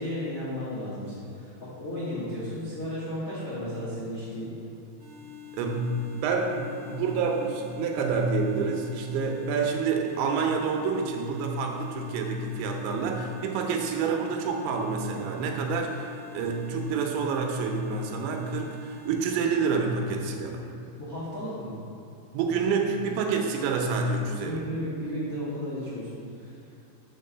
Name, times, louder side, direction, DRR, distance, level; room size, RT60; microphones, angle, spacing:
voice 1, 0.0-4.5 5.2-5.3 21.0-21.8 24.3-26.6, equal, 80° left, -10 dB, 0.7 m, -34 dB
sound 1, 5.0-19.5, left 10 dB, 70° right, 1.7 m, -46 dB
voice 2, 5.5-5.9 6.1-20.7 22.3-24.6, right 5 dB, 85° right, 2 dB, 3.1 m, -28 dB
6.1 x 4.6 x 6.6 m, 2.6 s
omnidirectional pair, 5.1 m